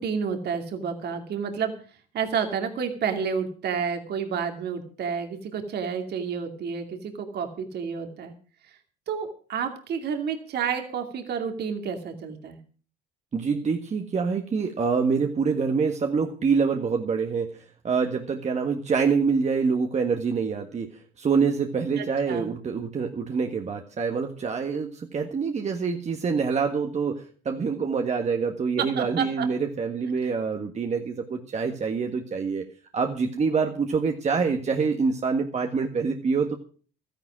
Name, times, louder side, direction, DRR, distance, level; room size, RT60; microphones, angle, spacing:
voice 1, 0.0-1.7 2.1-8.3 8.6-8.8 9.1-12.6 22.0-22.5 28.8-29.5 30.2-30.3, right 6 dB, 55° right, 5 dB, 2.4 m, -30 dB
voice 2, 13.3-17.5 17.8-20.9 21.2-32.6 32.9-36.6, right 5 dB, 35° right, 4 dB, 1.6 m, -26 dB
13.0 x 10.5 x 6.2 m, 0.42 s
supercardioid pair, 85°, 20 cm